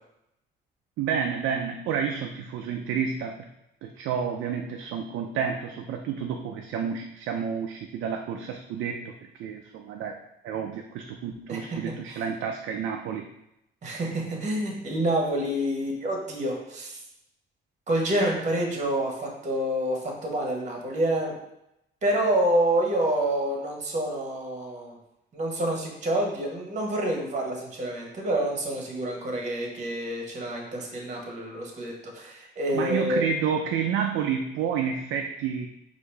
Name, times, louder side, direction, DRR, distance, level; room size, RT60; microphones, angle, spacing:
voice 1, 1.0-3.4 3.8-9.1 9.4-10.2 10.4-13.3 32.7-35.7, right 7 dB, 80° right, 3 dB, 0.4 m, -30 dB
voice 2, 11.5-11.8 12.1-12.2 13.8-17.0 17.9-21.3 22.0-25.0 25.3-33.2, right 1 dB, 35° right, 0 dB, 1.1 m, -28 dB
4.7 x 2.6 x 3.3 m, 0.84 s
cardioid pair, 90°, 20 cm